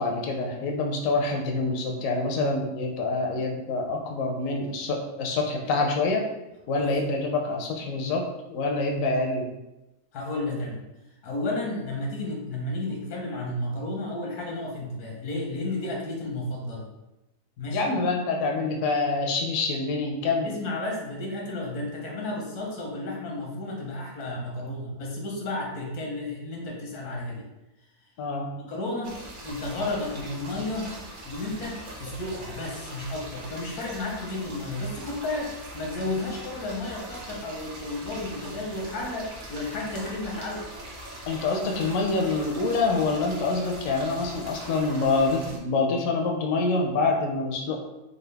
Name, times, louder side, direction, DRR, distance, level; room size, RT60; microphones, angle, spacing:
voice 1, 0.0-6.3 6.7-9.5 17.7-20.5 28.2-28.6 41.3-47.8, left 3 dB, 70° left, 1 dB, 0.9 m, -26 dB
voice 2, 10.1-10.8 11.2-16.9 17.6-17.9 20.4-27.5 28.7-31.0 31.2-40.7, left 2 dB, 90° left, -1 dB, 1.4 m, -32 dB
sound 1, 29.0-45.6, right 1 dB, 60° right, 0.5 m, -41 dB
3.9 x 2.4 x 3.3 m, 0.97 s
omnidirectional pair, 1.6 m